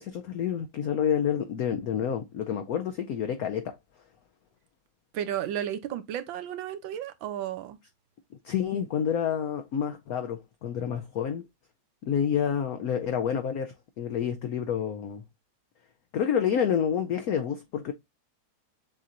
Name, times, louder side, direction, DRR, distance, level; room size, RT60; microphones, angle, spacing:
voice 1, 0.0-3.8 8.4-11.4 12.0-15.2 16.1-17.9, left 8 dB, 80° left, 0.8 m, -28 dB
voice 2, 5.1-7.8, right 10 dB, 80° right, 1.4 m, -33 dB
7.3 x 2.8 x 2.5 m
omnidirectional pair, 2.2 m